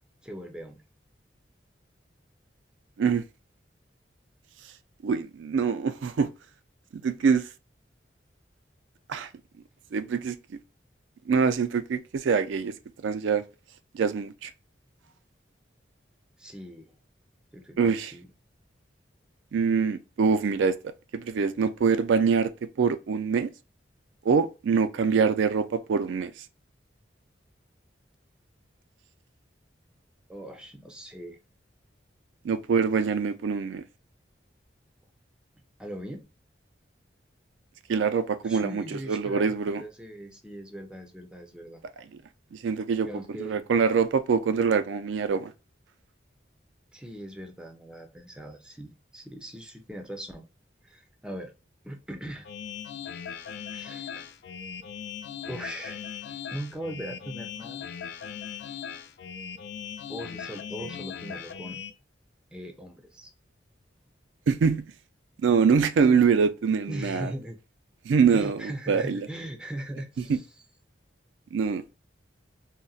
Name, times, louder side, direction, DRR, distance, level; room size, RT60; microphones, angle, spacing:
voice 1, 0.2-0.8 16.4-16.9 17.5-18.3 30.3-31.4 35.8-36.2 38.4-41.8 43.0-43.6 46.9-50.5 50.8-51.5 51.8-52.5 53.7-54.3 55.5-56.0 56.5-57.8 60.1-61.8 62.5-63.3 66.9-67.6 68.3-70.5, right 1 dB, 5° right, 0.5 m, -40 dB
voice 2, 5.0-6.3 6.9-7.5 9.1-9.3 9.9-10.4 11.3-12.7 13.0-13.4 13.9-14.5 17.8-18.1 19.5-20.8 21.1-22.5 22.8-23.5 24.3-26.3 32.4-33.8 37.9-39.8 42.5-43.1 43.4-45.5 64.5-64.9 65.4-67.3 68.1-69.3 70.3-70.4 71.5-71.8, right 5 dB, 80° right, 0.4 m, -24 dB
sound 1, 52.4-61.9, left 8 dB, 65° left, 0.4 m, -39 dB
3.9 x 2.1 x 2.3 m
head